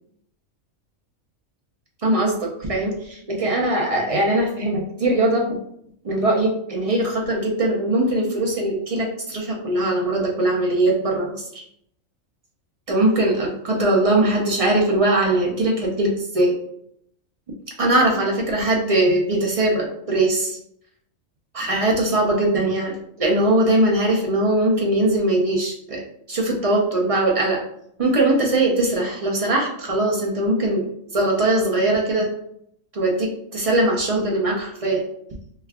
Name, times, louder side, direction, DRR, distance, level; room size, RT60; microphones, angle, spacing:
voice 1, 2.0-5.6 6.0-11.6 12.9-16.6 17.8-20.6 21.5-26.0 26.3-27.6 28.0-30.8 31.1-32.3 32.9-35.0, right 1 dB, 40° right, -2 dB, 0.5 m, -21 dB
3.1 x 2.3 x 3.5 m, 0.70 s
omnidirectional pair, 1.4 m